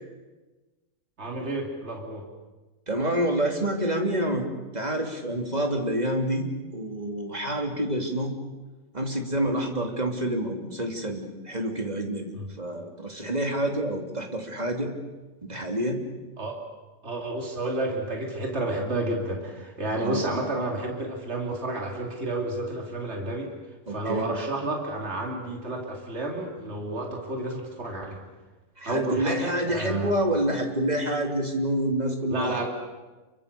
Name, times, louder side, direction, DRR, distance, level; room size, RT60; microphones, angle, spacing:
voice 1, 1.2-2.3 12.3-12.5 16.4-16.6 17.0-23.5 23.9-28.2 28.8-30.1 32.3-32.7, right 2 dB, 55° right, 1 dB, 3.3 m, -31 dB
voice 2, 2.9-4.4 4.7-8.3 8.9-12.3 12.6-14.9 15.4-16.0 19.9-20.2 23.9-24.2 28.8-32.7, right 1 dB, 30° right, 2 dB, 3.1 m, -27 dB
28.0 x 24.0 x 6.9 m, 1.2 s
omnidirectional pair, 1.4 m